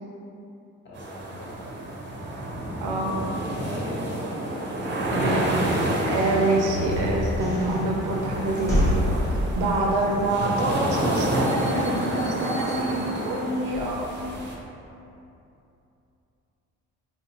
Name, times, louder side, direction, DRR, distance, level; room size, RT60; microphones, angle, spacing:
voice 1, 0.8-1.6 3.5-4.1, equal, 40° left, -7 dB, 1.1 m, -39 dB
sound 1, 1.0-14.5, right 1 dB, 40° right, 0.6 m, -29 dB
voice 2, 2.8-3.2 5.1-5.6 6.0-8.8 9.3-14.2, right 2 dB, 90° right, -1 dB, 0.6 m, -26 dB
sound 2, 5.8-14.5, left 1 dB, 10° left, 0.9 m, -30 dB
3.2 x 2.6 x 2.9 m, 2.8 s
cardioid pair, 90°, 30 cm